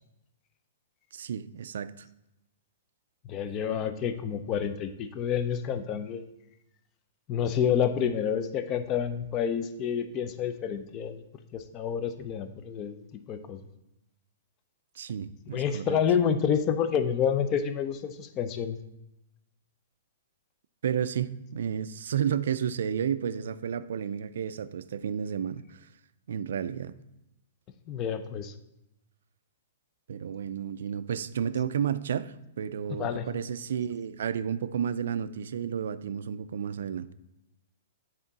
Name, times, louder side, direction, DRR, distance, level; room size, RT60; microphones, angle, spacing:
voice 1, 1.1-2.1 15.0-16.0 20.8-25.8 26.3-26.9 30.1-37.1, right 8 dB, 75° right, 0.3 m, -32 dB
voice 2, 3.2-6.2 7.3-11.2 11.5-13.0 13.3-13.6 15.5-18.8 27.9-28.5 32.9-33.3, left 8 dB, 30° left, 0.5 m, -29 dB
7.9 x 3.7 x 4.0 m
hypercardioid pair, 145°, 0 cm